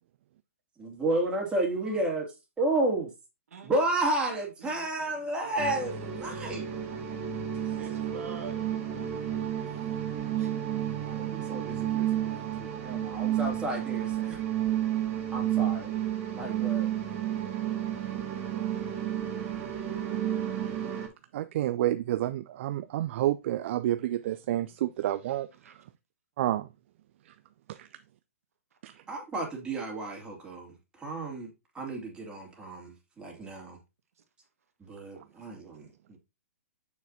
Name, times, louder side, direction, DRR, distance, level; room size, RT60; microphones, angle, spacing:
voice 1, 0.8-2.3 2.6-3.1 3.6-6.7 11.0-14.4 15.3-15.9 16.3-16.9 17.9-18.0 29.1-33.8 34.8-35.9, right 2 dB, 10° right, 2.7 m, -32 dB
voice 2, 5.4-5.8 6.3-6.8 7.8-9.1 10.4-10.7 25.6-25.7, right 5 dB, 75° right, 1.4 m, -46 dB
sound 1, 5.6-21.1, right 11 dB, 30° right, 1.9 m, -31 dB
voice 3, 21.3-25.8 26.4-26.7 27.3-27.4 27.7-27.9 28.8-29.0, right 13 dB, 55° right, 0.4 m, -30 dB
6.9 x 6.4 x 2.7 m
hypercardioid pair, 125°, 8 cm